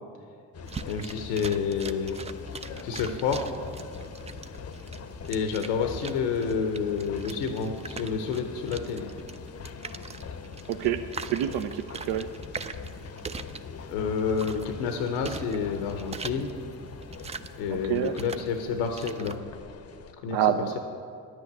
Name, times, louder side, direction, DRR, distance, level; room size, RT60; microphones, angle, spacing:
sound 1, 0.5-20.1, left 6 dB, 35° left, 0.7 m, -42 dB
sound 2, 0.6-19.4, right 5 dB, 15° right, 0.3 m, -43 dB
voice 1, 0.9-2.1 2.8-3.5 5.3-9.1 13.9-16.5 17.6-19.4 20.2-20.4, left 6 dB, 85° left, 6 dB, 0.8 m, -29 dB
voice 2, 10.7-11.0 11.3-12.3 17.7-18.1 20.3-20.8, right 11 dB, 65° right, 8 dB, 0.6 m, -27 dB
10.0 x 6.2 x 8.0 m, 2.5 s
hypercardioid pair, 60°, 45 cm